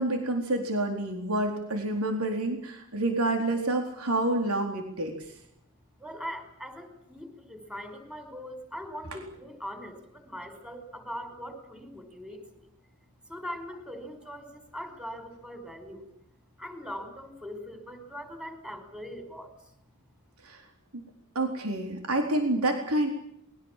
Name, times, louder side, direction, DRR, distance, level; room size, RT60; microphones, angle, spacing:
voice 1, 0.0-5.3 20.4-20.6 21.3-23.1, right 1 dB, 80° right, 4 dB, 4.2 m, -28 dB
voice 2, 6.0-12.7 13.3-16.1 16.6-19.5, equal, 5° right, 8 dB, 5.3 m, -41 dB
28.5 x 22.0 x 7.6 m, 0.76 s
head